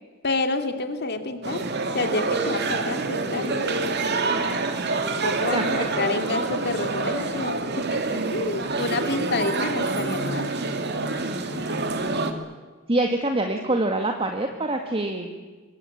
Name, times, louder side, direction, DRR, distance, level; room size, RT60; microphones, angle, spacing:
voice 1, 0.2-1.7 1.9-3.7 5.2-10.5, left 2 dB, 50° left, 7 dB, 2.5 m, -28 dB
sound 1, 1.4-12.3, right 3 dB, 50° right, 2.5 m, -27 dB
voice 2, 5.5-6.0 12.9-15.3, right 2 dB, 25° right, 4 dB, 1.8 m, -25 dB
24.5 x 23.0 x 8.6 m, 1.3 s
head